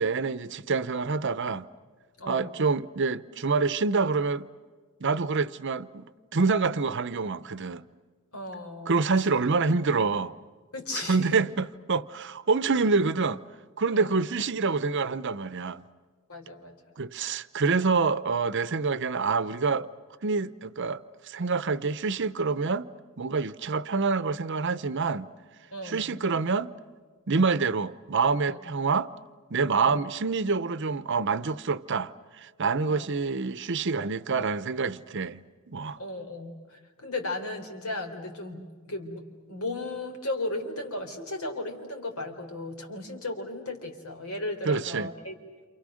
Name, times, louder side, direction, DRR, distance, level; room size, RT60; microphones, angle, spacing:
voice 1, 0.0-1.7 2.3-4.5 5.0-6.0 6.3-7.8 8.9-10.3 10.9-13.4 13.8-15.9 17.0-19.9 20.2-22.9 23.2-25.3 25.8-26.7 27.3-29.1 29.5-36.0 44.7-45.1, right 4 dB, 55° right, 0.7 m, -27 dB
voice 2, 2.2-2.6 8.3-9.0 10.7-11.4 13.9-14.1 16.3-16.7 25.7-26.1 28.5-28.6 29.8-30.0 32.9-33.1 36.0-45.3, left 2 dB, 75° left, 3.9 m, -36 dB
28.5 x 28.0 x 6.4 m
head